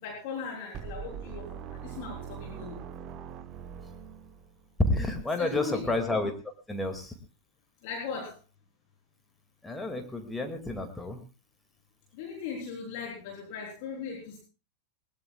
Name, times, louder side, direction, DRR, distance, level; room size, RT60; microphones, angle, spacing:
voice 1, 0.0-2.8 5.4-5.9 7.8-8.4 12.1-14.4, left 5 dB, 45° left, -1 dB, 3.8 m, -38 dB
sound 1, 0.7-4.8, right 8 dB, 35° right, 1.0 m, -42 dB
voice 2, 4.9-6.3 6.7-7.1 9.6-11.2, left 2 dB, 5° left, 4 dB, 2.3 m, -30 dB
20.5 x 20.0 x 2.4 m, 0.30 s
figure-of-eight pair, 90°, 0 cm